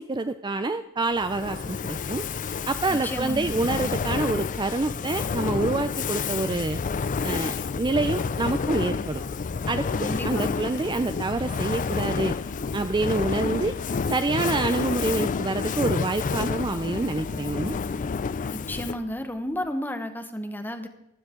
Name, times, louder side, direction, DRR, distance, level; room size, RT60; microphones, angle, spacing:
voice 1, 0.0-2.2 2.7-6.8 7.2-9.2 9.7-12.4 12.7-13.7 14.1-17.8, right 2 dB, 20° right, 10 dB, 0.4 m, -27 dB
Fire, 1.2-19.1, left 5 dB, 35° left, 0.4 m, -29 dB
voice 2, 2.9-3.6 9.9-10.7 18.5-20.9, left 1 dB, 10° left, 7 dB, 1.2 m, -32 dB
sound 1, 9.9-15.2, left 3 dB, 85° left, 1.2 m, -47 dB
15.5 x 12.5 x 3.8 m, 0.86 s
head